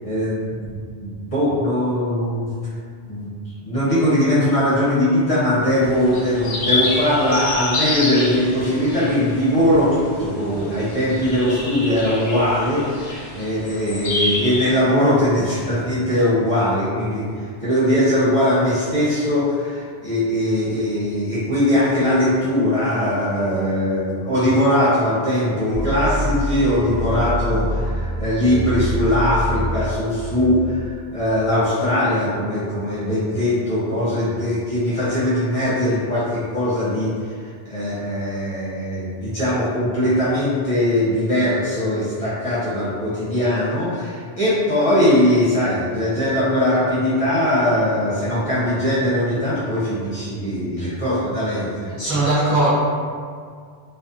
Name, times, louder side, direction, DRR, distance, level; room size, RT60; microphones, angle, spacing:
voice 1, 0.0-2.5 3.1-3.3 3.6-37.4 37.7-52.2, left 1 dB, 35° left, -12 dB, 0.8 m, -20 dB
sound 1, 5.8-14.7, left 2 dB, 55° left, 0.4 m, -28 dB
sound 2, 25.7-31.7, right 1 dB, 70° right, 0.9 m, -26 dB
voice 2, 52.0-52.7, right 2 dB, 20° right, -11 dB, 0.5 m, -18 dB
2.4 x 2.3 x 2.5 m, 2.1 s
omnidirectional pair, 1.1 m